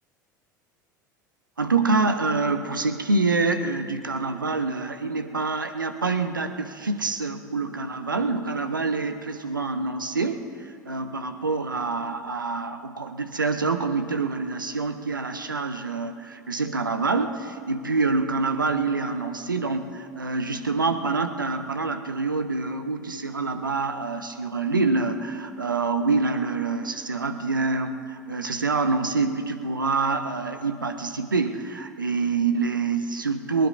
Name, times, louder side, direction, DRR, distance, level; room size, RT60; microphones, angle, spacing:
voice 1, 1.6-33.7, right 3 dB, 85° right, 8 dB, 0.7 m, -26 dB
22.0 x 19.5 x 2.5 m, 2.2 s
figure-of-eight pair, 70°, 11 cm